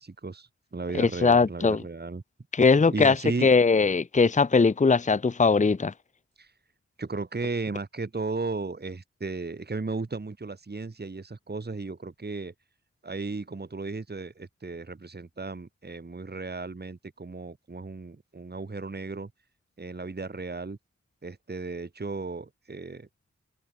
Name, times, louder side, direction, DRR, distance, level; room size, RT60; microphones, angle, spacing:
voice 1, 0.0-2.2 2.9-3.5 6.4-6.5 7.0-12.5 13.0-19.3 19.8-20.8 21.2-23.1, right 3 dB, 35° right, 1.5 m, -35 dB
voice 2, 1.0-1.8 2.5-3.2 3.4-5.9, left 4 dB, 25° left, 0.7 m, -20 dB
cardioid pair, 40°, 30 cm